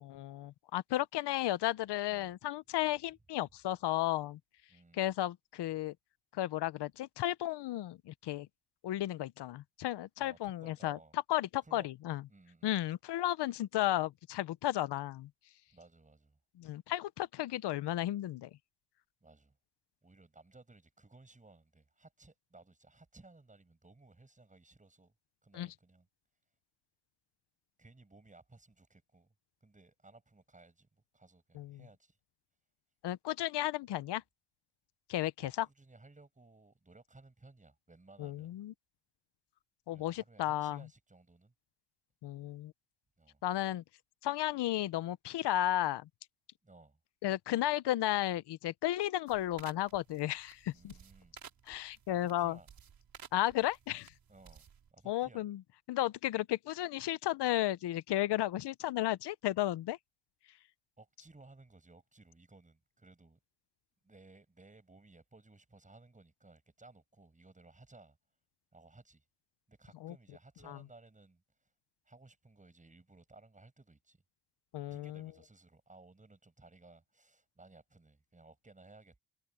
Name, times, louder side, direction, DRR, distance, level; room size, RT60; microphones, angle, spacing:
voice 1, 0.0-4.4 4.9-5.9 6.3-8.5 8.8-11.0 11.3-12.2 12.6-15.3 16.6-18.5 25.5-25.7 31.6-31.8 33.0-34.2 35.1-35.7 38.2-38.7 39.9-40.8 42.2-42.7 43.4-43.8 44.2-46.1 47.2-50.9 51.7-52.6 53.3-54.1 55.1-55.6 55.9-60.0 70.0-70.1 70.7-70.8 74.7-75.3, left 14 dB, 80° left, 0.7 m, -34 dB
voice 2, 4.7-5.0 10.2-11.2 11.6-11.9 12.3-12.7 15.7-16.4 19.2-19.6 20.0-25.1 25.4-26.1 27.8-29.3 29.6-32.2 35.4-38.6 39.9-41.5 43.2-43.4 46.6-47.0 50.7-51.4 52.1-52.7 54.3-55.4 61.0-63.4 64.0-68.2 68.7-69.2 69.7-71.4 72.0-74.2 74.9-79.2, right 2 dB, 20° right, 7.9 m, -59 dB
sound 1, 49.3-54.9, right 7 dB, 60° right, 4.3 m, -56 dB
cardioid pair, 115°, 40 cm